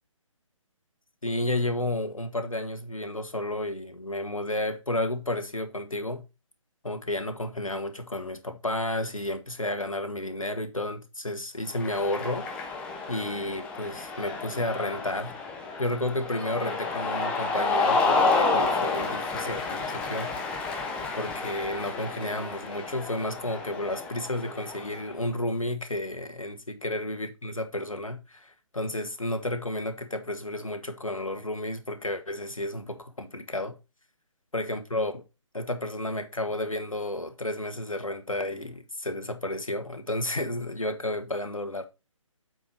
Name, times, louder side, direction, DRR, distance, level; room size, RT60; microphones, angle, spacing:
voice 1, 1.2-6.2 6.8-12.5 13.1-15.4 15.8-20.3 21.1-33.8 34.5-35.2 35.5-41.8, left 1 dB, 85° left, 1.6 m, -32 dB
Cheering, 11.7-25.1, left 3 dB, 5° left, 0.5 m, -30 dB
7.8 x 4.7 x 4.6 m
figure-of-eight pair, 145°, 17 cm